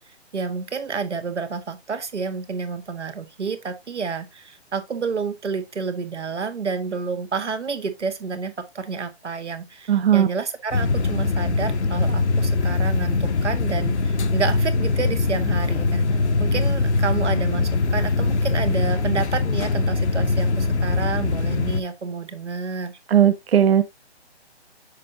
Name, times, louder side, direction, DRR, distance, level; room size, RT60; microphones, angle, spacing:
voice 1, 0.3-22.9, right 5 dB, 90° right, 1.6 m, -29 dB
voice 2, 9.9-10.3 23.1-23.8, right 9 dB, 60° right, 0.7 m, -17 dB
sound 1, 10.7-21.8, left 3 dB, 75° left, 0.9 m, -22 dB
6.6 x 5.3 x 2.8 m
hypercardioid pair, 160°, 34 cm